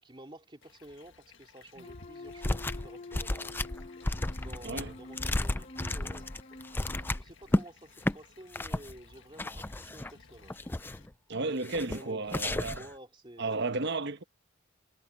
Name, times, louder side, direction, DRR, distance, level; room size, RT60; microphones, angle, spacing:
voice 1, 0.0-3.6 4.4-6.6 7.1-10.6 11.8-13.7, right 1 dB, 20° right, 2.5 m, -51 dB
sound 1, 0.6-11.1, left 4 dB, 55° left, 1.7 m, -57 dB
sound 2, 1.8-7.2, left 2 dB, 30° left, 1.0 m, -47 dB
sound 3, 2.4-2.9 3.1-7.6 8.0-8.2 8.5-8.9 9.4-10.1 10.5-11.1 11.6-12.0 12.3-12.9, left 1 dB, 10° left, 0.4 m, -32 dB
voice 2, 11.3-12.8 13.4-14.2, right 3 dB, 50° right, 1.1 m, -33 dB
head